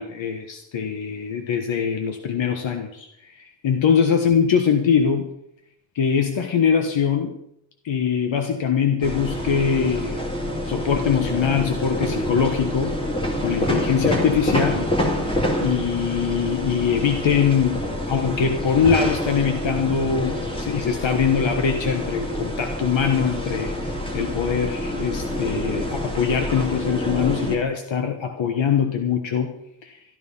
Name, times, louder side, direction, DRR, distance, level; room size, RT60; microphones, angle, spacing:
voice 1, 0.0-5.3 5.9-7.3 7.8-10.2 10.6-12.9 13.4-14.9 15.6-17.8 18.1-29.5 29.8-30.0, left 7 dB, 75° left, 5 dB, 1.5 m, -22 dB
sound 1, 9.0-27.6, left 1 dB, 10° left, 2.5 m, -27 dB
13.5 x 12.5 x 5.5 m, 0.78 s
wide cardioid pair, 135°, 46 cm